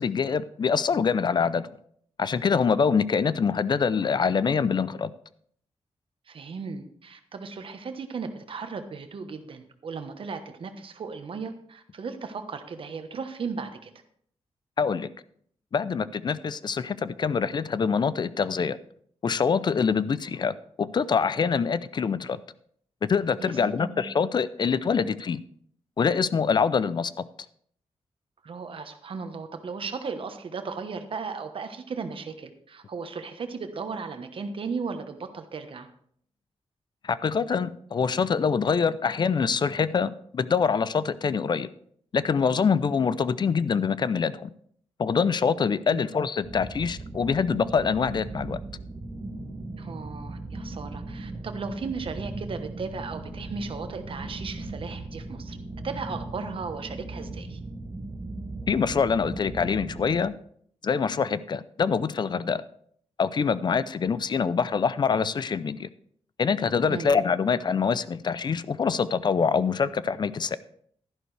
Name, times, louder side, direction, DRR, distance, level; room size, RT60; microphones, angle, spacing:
voice 1, 0.0-1.7 2.2-5.1 14.8-15.1 15.7-18.8 19.2-22.4 23.0-25.4 26.0-27.1 37.0-41.7 42.1-44.5 45.0-48.6 58.7-60.3 60.8-62.6 63.2-65.9 66.4-70.6, left 6 dB, 45° left, 16 dB, 0.5 m, -25 dB
voice 2, 6.3-13.9 23.4-24.0 28.4-35.9 45.9-46.1 49.8-55.6 55.8-57.6 66.9-67.1, right 5 dB, 55° right, 7 dB, 1.1 m, -36 dB
sound 1, 46.4-60.2, right 2 dB, 20° right, 1.1 m, -38 dB
12.0 x 11.0 x 3.3 m, 0.63 s
wide cardioid pair, 140°, 11 cm